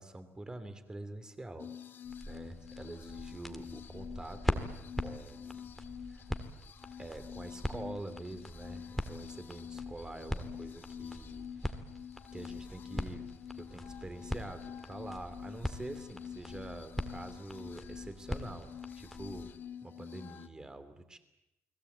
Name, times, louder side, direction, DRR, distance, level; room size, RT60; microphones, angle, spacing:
voice 1, 0.0-1.7 2.3-4.7 5.0-5.7 6.1-6.3 7.0-11.7 12.3-13.3 13.6-19.5 19.8-21.2, right 2 dB, 15° right, 10 dB, 2.7 m, -46 dB
sound 1, 1.6-20.5, left 8 dB, 45° left, 1.3 m, -47 dB
sound 2, 2.0-19.6, equal, 5° left, 1.7 m, -42 dB
30.0 x 21.0 x 8.1 m, 0.90 s
cardioid pair, 145°, 5 cm